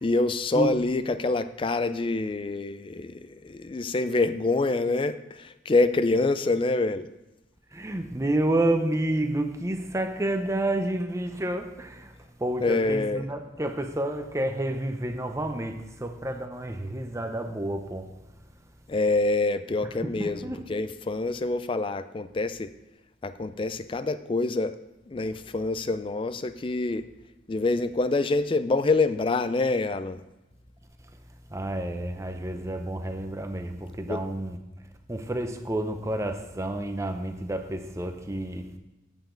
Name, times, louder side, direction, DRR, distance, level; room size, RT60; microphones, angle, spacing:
voice 1, 0.0-7.1 12.6-13.2 18.9-22.7 23.2-24.7 25.1-27.0 27.5-30.2 34.1-34.2, left 3 dB, 25° left, 13 dB, 0.4 m, -26 dB
voice 2, 7.7-12.1 12.4-18.1 20.0-20.7 31.5-34.6 35.1-38.7, right 1 dB, 15° right, 6 dB, 0.7 m, -29 dB
9.1 x 8.2 x 3.9 m, 1.0 s
head